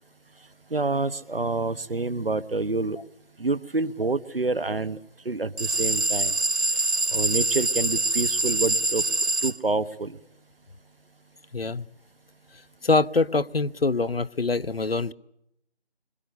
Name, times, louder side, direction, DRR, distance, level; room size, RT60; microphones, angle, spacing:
voice 1, 0.7-3.0 3.4-5.0 5.2-6.3 7.1-9.0 9.4-10.2, right 3 dB, 60° right, 1.3 m, -27 dB
sound 1, 5.6-9.6, right 2 dB, 90° right, 1.4 m, -24 dB
voice 2, 11.5-11.8 12.8-15.1, left 3 dB, 65° left, 1.0 m, -24 dB
27.5 x 25.0 x 8.4 m
figure-of-eight pair, 170°, 32 cm